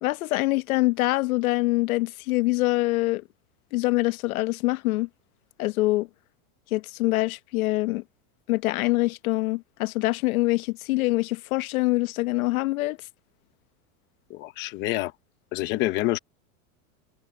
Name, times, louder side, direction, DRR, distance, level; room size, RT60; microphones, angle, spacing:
voice 1, 0.0-3.2 3.7-5.1 5.6-6.1 6.7-8.0 8.5-13.0, left 20 dB, 85° left, 1.1 m, -24 dB
voice 2, 14.3-15.1 15.5-16.2, left 17 dB, 25° left, 0.9 m, -27 dB
supercardioid pair, 180°, 42 cm